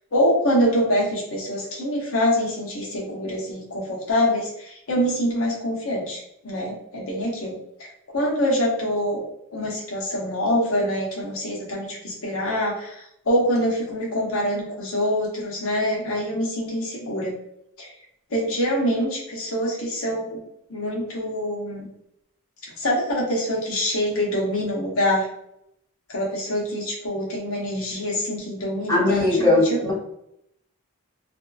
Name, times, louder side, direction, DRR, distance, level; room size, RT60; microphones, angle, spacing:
voice 1, 0.1-7.6 8.1-9.2 9.5-17.3 17.8-17.9 18.3-20.4 20.7-21.9 22.8-25.3 26.1-29.8, equal, 65° left, -3 dB, 0.8 m, -25 dB
voice 2, 28.9-29.9, left 2 dB, 15° left, -6 dB, 0.8 m, -19 dB
2.6 x 2.3 x 2.3 m, 0.78 s
head